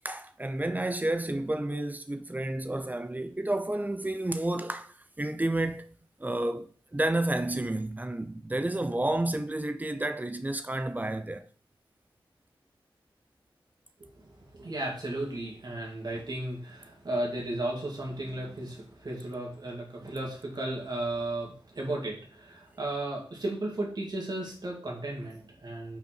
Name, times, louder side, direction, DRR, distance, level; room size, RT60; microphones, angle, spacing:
voice 1, 0.0-11.5, right 1 dB, 20° right, 0.6 m, -31 dB
voice 2, 14.0-26.0, right 1 dB, 50° right, 2.4 m, -35 dB
5.6 x 4.6 x 4.5 m
wide cardioid pair, 80°, 9 cm